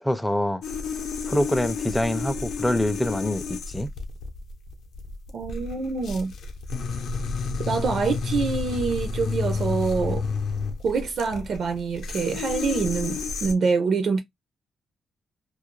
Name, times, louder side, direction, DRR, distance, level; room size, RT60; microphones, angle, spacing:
voice 1, 0.0-0.6 1.3-3.9, left 1 dB, 5° left, 0.4 m, -25 dB
sound 1, 0.6-13.5, left 4 dB, 70° left, 0.5 m, -31 dB
voice 2, 5.3-6.3 7.7-10.3 10.8-14.2, right 4 dB, 55° right, 0.4 m, -25 dB
2.3 x 2.0 x 3.0 m
cardioid pair, 125°, 0 cm